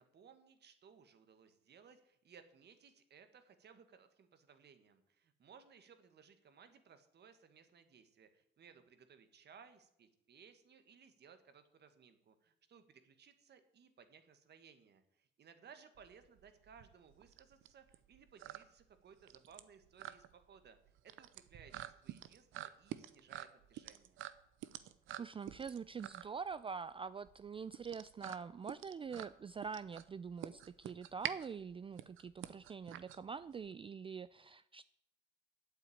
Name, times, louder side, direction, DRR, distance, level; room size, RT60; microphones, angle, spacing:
voice 1, 0.0-20.8 21.0-24.2, right 6 dB, 55° right, 9 dB, 1.6 m, -62 dB
sound 1, 15.9-33.7, right 12 dB, 85° right, 0.7 m, -48 dB
voice 2, 25.2-34.8, right 6 dB, 25° right, 15 dB, 0.3 m, -45 dB
8.8 x 8.0 x 8.5 m, 0.78 s
cardioid pair, 90°, 20 cm